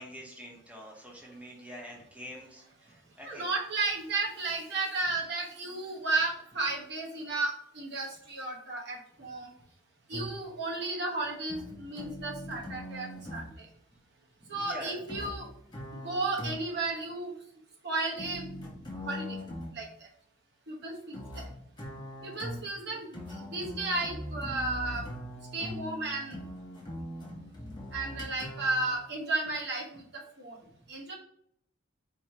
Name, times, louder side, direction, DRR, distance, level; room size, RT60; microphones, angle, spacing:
voice 1, 0.0-3.5 14.4-15.0 22.9-23.0, equal, 5° right, -2 dB, 0.8 m, -45 dB
voice 2, 3.2-9.5 10.1-13.7 14.5-15.5 16.0-17.3 17.8-18.5 19.0-19.4 19.7-19.9 20.7-21.2 22.2-25.0 25.5-26.4 27.9-30.0 30.4-30.5 30.9-31.1, right 3 dB, 55° right, -2 dB, 1.0 m, -33 dB
sound 1, 10.1-10.6 11.5-13.6 15.1-16.9 18.2-19.8 21.1-29.0, left 1 dB, 20° left, 0.7 m, -41 dB
4.4 x 2.7 x 2.8 m, 0.68 s
head